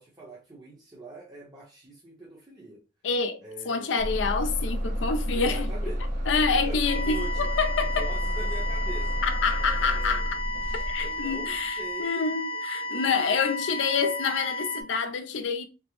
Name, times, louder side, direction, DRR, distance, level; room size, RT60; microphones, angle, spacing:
voice 1, 0.0-2.8 3.4-4.1 5.3-6.1 6.6-7.5 8.0-9.2 9.6-10.4 11.0-12.2 12.5-13.4 14.9-15.0, right 2 dB, 25° right, 0.7 m, -43 dB
voice 2, 3.0-5.7 6.3-8.1 9.2-10.2 10.7-15.6, left 5 dB, 85° left, 0.5 m, -27 dB
Bus / Engine starting, 4.0-11.7, equal, 65° right, 1.1 m, -30 dB
sound 1, 6.9-14.8, left 2 dB, 35° left, 0.5 m, -33 dB
3.5 x 2.0 x 2.9 m
head